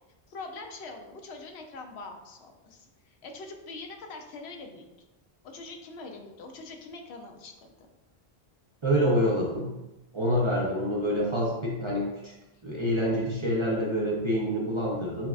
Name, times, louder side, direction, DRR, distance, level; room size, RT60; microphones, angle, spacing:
voice 1, 0.3-4.8 5.4-7.5 7.8-7.9, left 3 dB, 80° left, 4 dB, 0.8 m, -43 dB
voice 2, 8.8-9.8 10.1-12.3 12.6-15.3, equal, 40° right, -4 dB, 0.5 m, -27 dB
6.0 x 2.2 x 2.3 m, 1.0 s
omnidirectional pair, 1.1 m